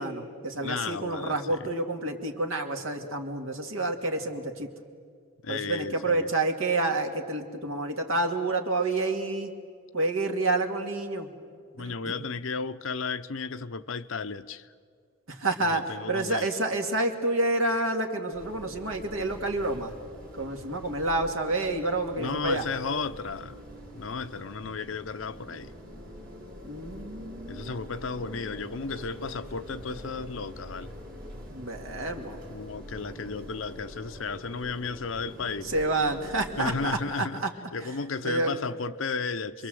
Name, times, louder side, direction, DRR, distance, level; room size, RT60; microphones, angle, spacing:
voice 1, 0.0-4.7 5.5-9.5 9.9-11.3 11.8-12.1 15.3-19.9 20.3-22.6 26.6-27.7 31.5-32.4 35.6-37.5 38.2-38.5, right 2 dB, 80° right, 2.3 m, -29 dB
voice 2, 0.6-1.7 5.4-6.3 11.8-14.7 15.6-16.5 22.2-23.6 23.9-25.7 27.5-30.9 32.5-35.7 36.6-37.4 37.7-39.7, left 4 dB, 75° left, 0.8 m, -34 dB
sound 1, 18.3-37.0, equal, 55° right, 5.1 m, -44 dB
27.5 x 22.5 x 7.8 m
head